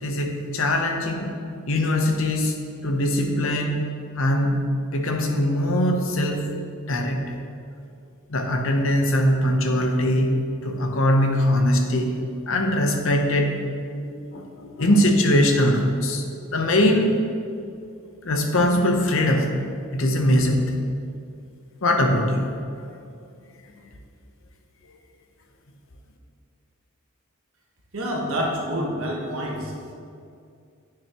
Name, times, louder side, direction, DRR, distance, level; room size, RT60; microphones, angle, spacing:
voice 1, 0.0-1.4 1.7-3.8 4.1-4.6 4.9-6.5 6.9-7.4 8.3-12.1 12.5-13.6 13.9-16.2 16.5-17.2 18.2-19.5 19.9-20.8 21.8-22.5, left 1 dB, 60° left, 3 dB, 0.7 m, -21 dB
voice 2, 27.9-29.7, equal, 65° right, -2 dB, 1.3 m, -27 dB
9.1 x 6.7 x 2.9 m, 2.4 s
head